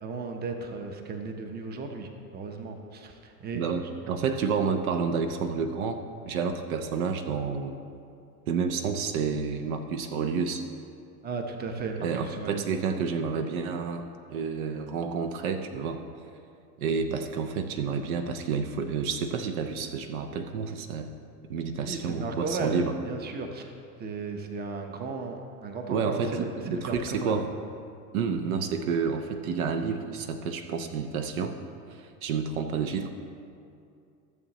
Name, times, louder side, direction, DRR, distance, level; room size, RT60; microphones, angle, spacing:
voice 1, 0.0-3.7 11.2-12.6 21.8-23.7 24.0-27.4, right 3 dB, 20° right, 5 dB, 0.8 m, -35 dB
voice 2, 3.5-7.8 8.5-10.6 12.0-16.0 16.8-21.1 21.5-22.9 25.9-27.5 28.1-31.6 31.9-33.1, right 5 dB, 60° right, 7 dB, 0.8 m, -30 dB
14.5 x 7.0 x 3.0 m, 2.5 s
hypercardioid pair, 100°, 47 cm